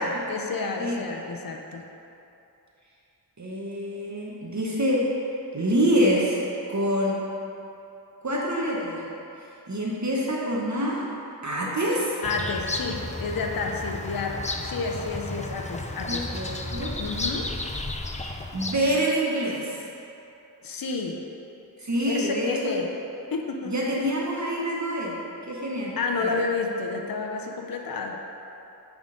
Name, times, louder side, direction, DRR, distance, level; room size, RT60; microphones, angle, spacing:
voice 1, 0.0-1.9 12.2-16.3 17.0-17.5 20.6-21.2 22.1-22.9 23.3-23.7 26.0-28.2, left 4 dB, 65° left, 2 dB, 0.6 m, -30 dB
voice 2, 3.4-5.0 5.5-6.4 6.7-7.2 8.2-9.0 9.7-11.0 11.4-12.2 16.1-16.9 18.5-19.8 21.8-22.7 23.7-25.2 25.4-25.9 26.2-26.4, equal, 50° right, -4 dB, 0.9 m, -26 dB
Bird vocalization bird call bird song, 12.2-19.0, left 2 dB, 20° left, 0.4 m, -33 dB
9.0 x 3.7 x 3.8 m, 2.9 s
wide cardioid pair, 55°, 38 cm